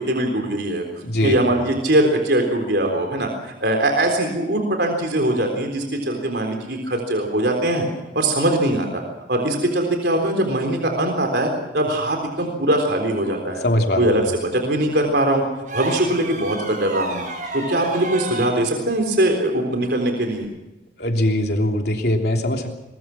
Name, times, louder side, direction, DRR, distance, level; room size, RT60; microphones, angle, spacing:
voice 1, 0.0-0.8 1.2-7.8 8.1-9.0 9.3-13.6 14.0-15.4 15.7-17.2 17.5-20.5, right 1 dB, 65° right, 3 dB, 3.8 m, -21 dB
voice 2, 1.0-1.4 13.6-14.1 21.0-22.8, left 1 dB, 60° left, 2 dB, 3.2 m, -21 dB
sound 1, 15.7-18.6 20.3-20.5, right 2 dB, 45° right, 7.4 m, -30 dB
22.5 x 21.5 x 6.0 m, 0.98 s
head